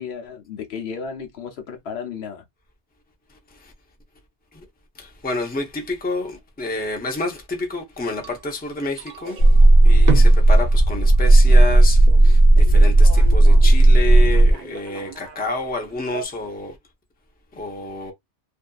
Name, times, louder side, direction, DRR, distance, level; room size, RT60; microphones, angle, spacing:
voice 1, 0.0-2.4, left 6 dB, 80° left, 0.9 m, -33 dB
voice 2, 5.0-9.4 9.8-16.8 17.5-18.1, left 2 dB, 10° left, 0.5 m, -29 dB
sound 1, 8.2-16.2, right 6 dB, 55° right, 0.6 m, -34 dB
sound 2, 9.4-14.5, right 2 dB, 50° left, 0.7 m, -12 dB
2.7 x 2.5 x 2.3 m
omnidirectional pair, 1.1 m